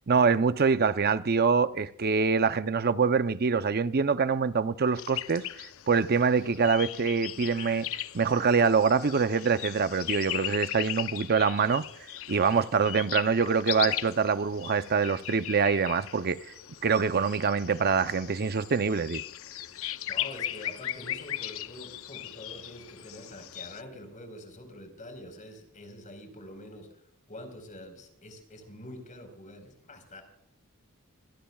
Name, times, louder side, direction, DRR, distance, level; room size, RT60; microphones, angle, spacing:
voice 1, 0.1-5.4 5.9-11.8 12.3-16.4 16.8-19.2, right 5 dB, 45° right, 0.6 m, -25 dB
sound 1, 5.0-23.8, left 12 dB, 65° left, 0.6 m, -38 dB
voice 2, 20.1-26.9 27.3-30.2, left 1 dB, 35° left, 4.5 m, -45 dB
24.5 x 17.5 x 2.4 m
head